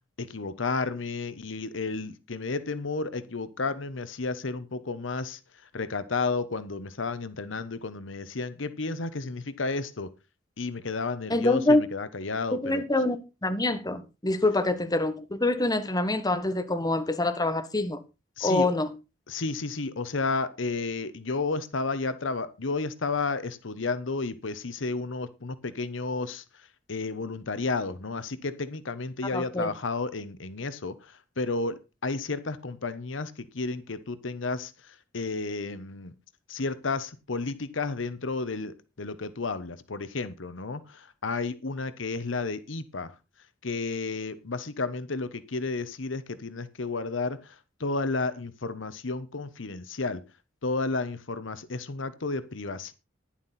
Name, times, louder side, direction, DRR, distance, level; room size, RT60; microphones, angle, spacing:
voice 1, 0.2-10.1 10.6-12.8 18.4-18.8 19.3-36.1 36.5-43.1 43.6-50.2 50.6-52.9, left 3 dB, 80° left, 1.0 m, -32 dB
voice 2, 11.3-11.8 12.6-18.0 18.4-18.9 29.3-29.7, left 2 dB, 20° left, 1.4 m, -25 dB
11.5 x 11.0 x 4.2 m
head